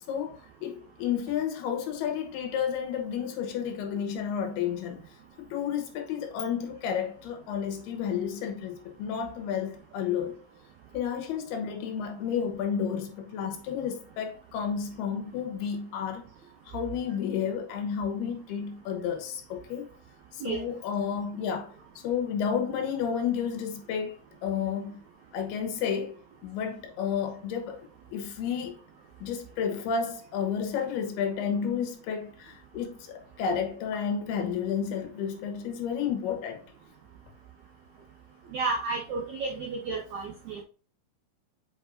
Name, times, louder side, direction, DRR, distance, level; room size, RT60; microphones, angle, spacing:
voice 1, 0.1-5.0 5.4-10.4 10.9-16.2 16.7-19.9 20.3-21.7 22.0-24.2 24.4-25.0 25.3-27.8 28.1-28.8 29.2-36.6, left 7 dB, 85° left, 3.0 m, -31 dB
voice 2, 38.5-40.6, right 4 dB, 85° right, 1.6 m, -32 dB
7.5 x 4.8 x 2.7 m
omnidirectional pair, 4.5 m